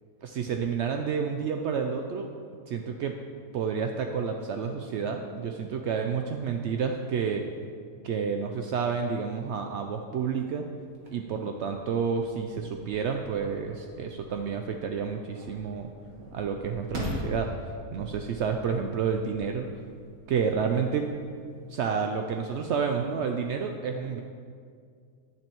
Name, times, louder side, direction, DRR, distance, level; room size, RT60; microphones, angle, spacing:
voice 1, 0.2-2.3 2.7-3.1 3.5-7.4 8.0-10.6 11.1-15.9 16.3-17.5 17.9-19.7 20.3-21.1 21.7-24.2, right 6 dB, 75° right, 4 dB, 0.6 m, -30 dB
sound 1, 10.9-21.8, left 1 dB, 60° right, 1.9 m, -43 dB
10.5 x 10.5 x 3.0 m, 2.2 s
omnidirectional pair, 1.7 m